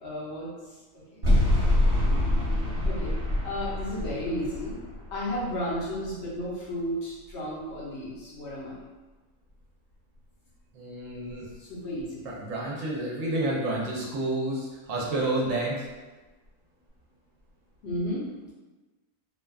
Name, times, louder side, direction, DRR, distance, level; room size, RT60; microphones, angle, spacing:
voice 1, 0.0-0.5 1.1-1.2 2.1-3.1 3.4-4.8 5.1-8.7 11.6-12.3 17.8-18.2, equal, 60° left, -7 dB, 0.9 m, -33 dB
sound 1, 1.2-6.4, left 1 dB, 45° right, 1.0 m, -26 dB
voice 2, 10.7-11.4 12.2-15.8, right 2 dB, 70° right, -4 dB, 0.9 m, -30 dB
2.6 x 2.2 x 2.2 m, 1.2 s
omnidirectional pair, 1.5 m